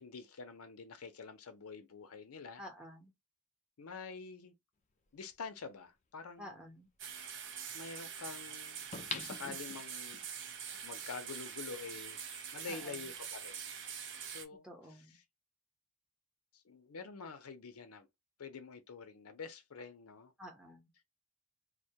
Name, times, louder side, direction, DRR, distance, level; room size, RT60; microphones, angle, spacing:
voice 1, 0.0-2.6 3.8-4.5 5.1-6.7 7.7-10.2 10.8-12.2 12.5-13.6 14.3-14.7 16.5-18.1 18.4-20.3, left 5 dB, 85° left, 0.6 m, -47 dB
voice 2, 2.6-3.1 6.4-6.9 12.7-13.1 14.6-15.2 20.4-20.9, equal, 5° right, 0.8 m, -51 dB
sound 1, 5.3-5.4 8.9-10.2 10.7-10.8, left 5 dB, 35° left, 0.4 m, -43 dB
sound 2, 7.0-14.5, right 7 dB, 60° right, 0.5 m, -45 dB
2.2 x 2.2 x 2.7 m
head